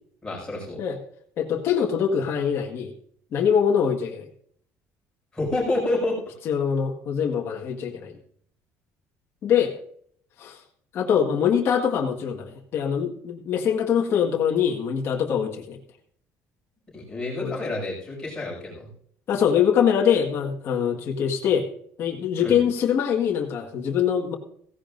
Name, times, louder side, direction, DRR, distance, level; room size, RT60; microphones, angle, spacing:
voice 1, 0.2-0.8 5.3-6.2 16.9-18.9 22.4-22.6, left 2 dB, 15° left, -3 dB, 6.5 m, -28 dB
voice 2, 1.4-2.9 3.3-4.3 6.5-8.1 9.4-9.8 10.4-10.6 10.9-15.8 17.4-17.5 19.3-21.7 22.0-24.3, left 8 dB, 45° left, -1 dB, 1.8 m, -23 dB
16.5 x 16.0 x 2.6 m, 0.63 s
cardioid pair, 165°, 6 cm